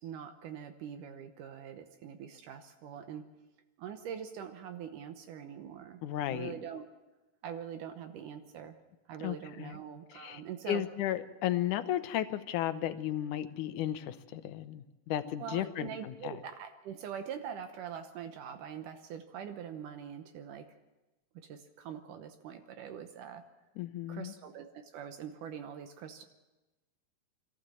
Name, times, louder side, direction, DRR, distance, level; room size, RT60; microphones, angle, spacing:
voice 1, 0.0-3.3 3.8-6.0 6.3-6.9 7.4-8.8 9.1-10.8 15.4-20.7 21.3-23.4 24.1-26.2, right 8 dB, 75° right, 7 dB, 2.5 m, -43 dB
voice 2, 6.0-6.5 9.2-9.8 10.1-10.4 10.7-16.3 23.8-24.3, left 12 dB, 75° left, 11 dB, 2.3 m, -34 dB
23.0 x 15.0 x 7.6 m, 1.1 s
omnidirectional pair, 3.9 m